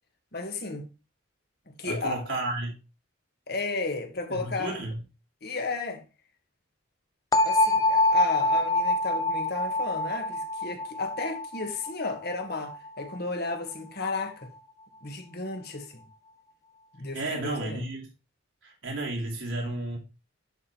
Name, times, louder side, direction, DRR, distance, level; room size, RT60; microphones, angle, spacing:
voice 1, 0.3-0.9 1.7-2.4 3.5-4.8 5.4-6.0 7.4-14.5 15.0-16.1 17.0-17.9, left 3 dB, 50° left, 1.7 m, -34 dB
voice 2, 1.8-2.7 4.3-5.0 17.1-18.1 18.6-20.0, right 2 dB, 65° right, 2.9 m, -32 dB
sound 1, 7.3-13.2, left 2 dB, 15° left, 0.4 m, -26 dB
11.0 x 3.7 x 4.6 m
head